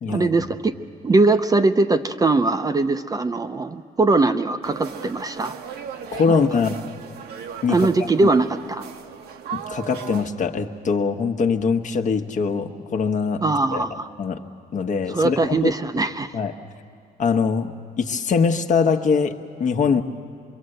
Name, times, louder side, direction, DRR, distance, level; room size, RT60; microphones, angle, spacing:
voice 1, 0.1-0.7 1.0-5.5 6.3-6.4 7.7-8.8 13.4-14.1 15.1-16.3, right 3 dB, 20° right, 9 dB, 0.7 m, -21 dB
sound 1, 4.6-10.3, right 7 dB, 70° right, 1.2 m, -36 dB
voice 2, 6.1-6.8 7.6-7.9 8.2-8.3 9.5-13.4 13.7-13.9 14.2-14.4 14.7-15.7 16.3-16.5 17.2-17.7 18.0-20.0, left 5 dB, 45° left, 6 dB, 1.2 m, -22 dB
24.0 x 22.5 x 7.9 m, 2.3 s
cardioid pair, 110°, 17 cm